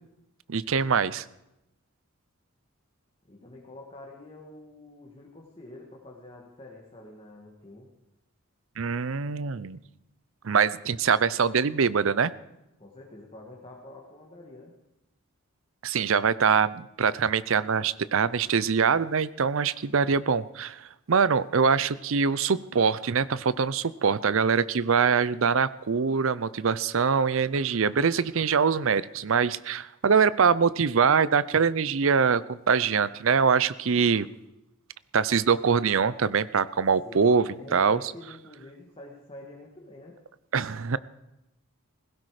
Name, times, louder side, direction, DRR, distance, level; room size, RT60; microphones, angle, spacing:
voice 1, 0.5-1.2 8.8-9.8 10.4-12.3 15.8-34.3 35.1-38.0 40.5-41.0, right 6 dB, 65° right, 18 dB, 0.5 m, -24 dB
voice 2, 3.2-7.9 12.8-14.7 37.0-40.2, left 1 dB, 25° left, -2 dB, 1.8 m, -47 dB
16.5 x 16.5 x 4.9 m, 0.90 s
head